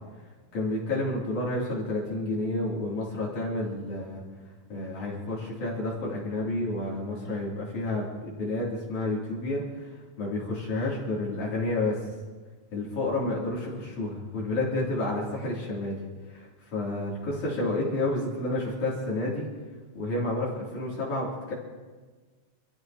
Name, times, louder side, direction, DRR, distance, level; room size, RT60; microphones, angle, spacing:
voice 1, 0.5-4.2 4.7-12.1 12.7-16.0 16.3-19.5 19.9-21.5, left 2 dB, 70° left, -6 dB, 4.7 m, -30 dB
29.0 x 14.0 x 3.0 m, 1.4 s
omnidirectional pair, 3.6 m